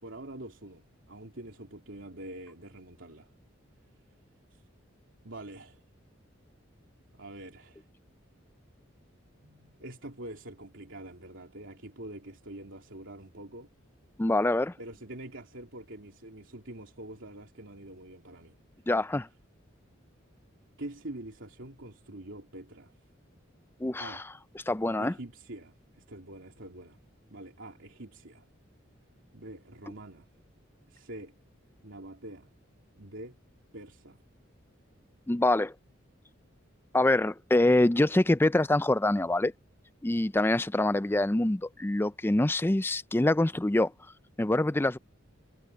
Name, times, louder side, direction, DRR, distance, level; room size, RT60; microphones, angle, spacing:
voice 1, 0.0-3.3 4.5-4.6 5.2-5.8 7.1-7.9 9.4-13.7 14.8-18.6 20.8-22.9 23.4-23.5 24.0-24.2 25.0-27.0 27.3-28.4 29.3-30.3 30.9-31.3 31.8-32.5 33.0-33.4 33.7-34.2, right 1 dB, 70° right, 3.2 m, -45 dB
voice 2, 14.2-14.7 18.9-19.3 23.8-24.2 24.7-25.1 35.3-35.7 36.9-39.5 40.0-43.9 44.4-45.0, left 1 dB, 10° left, 0.4 m, -25 dB
head